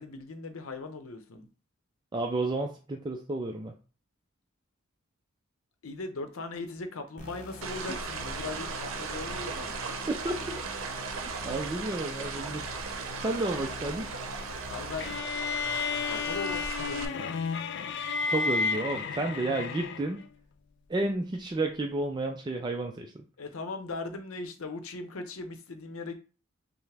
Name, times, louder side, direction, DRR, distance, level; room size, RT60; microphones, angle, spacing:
voice 1, 0.0-1.5 5.8-9.7 14.7-15.1 16.0-17.4 23.4-26.1, left 3 dB, 90° left, 0.7 m, -39 dB
voice 2, 2.1-3.7 10.1-10.6 11.4-12.7 13.2-14.1 18.3-20.2 20.9-23.2, right 2 dB, 20° right, 0.4 m, -31 dB
sound 1, 7.2-15.2, left 3 dB, 35° left, 0.9 m, -45 dB
sound 2, 7.6-17.0, right 4 dB, 75° right, 0.7 m, -37 dB
sound 3, 15.0-20.3, left 5 dB, 55° left, 0.3 m, -32 dB
5.7 x 2.1 x 3.3 m
head